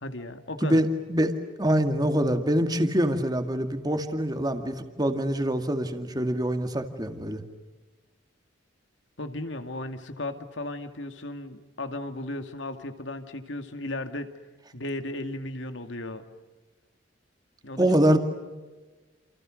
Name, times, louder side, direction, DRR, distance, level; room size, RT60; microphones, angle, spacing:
voice 1, 0.0-0.8 9.2-14.3 14.7-16.2 17.6-17.9, left 2 dB, 80° left, 7 dB, 2.4 m, -35 dB
voice 2, 0.6-7.4 17.8-18.2, equal, 20° right, 6 dB, 2.2 m, -25 dB
29.0 x 28.5 x 6.5 m, 1.2 s
head